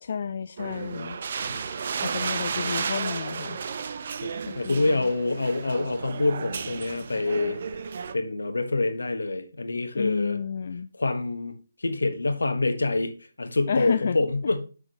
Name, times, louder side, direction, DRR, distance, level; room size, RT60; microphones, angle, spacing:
voice 1, 0.0-1.2 2.0-3.6 4.4-4.8 9.9-10.9 13.7-14.2, left 6 dB, 50° left, 0.4 m, -30 dB
sound 1, 0.6-8.1, right 6 dB, 50° right, 0.7 m, -33 dB
voice 2, 4.2-7.6 8.1-10.4 10.9-13.1 13.4-14.6, left 2 dB, 80° left, 1.3 m, -26 dB
7.7 x 6.3 x 3.0 m
figure-of-eight pair, 150°, 0 cm